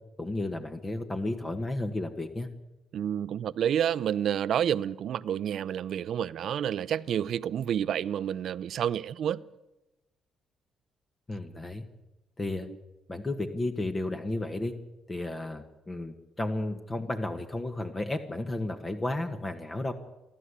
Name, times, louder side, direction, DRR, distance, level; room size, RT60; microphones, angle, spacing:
voice 1, 0.2-2.5 11.3-11.8 12.4-12.7 13.1-14.7 15.1-19.9, left 2 dB, 25° left, 1.6 m, -33 dB
voice 2, 2.9-9.4, right 9 dB, 70° right, 0.7 m, -29 dB
28.5 x 11.5 x 8.3 m
cardioid pair, 90°, 0 cm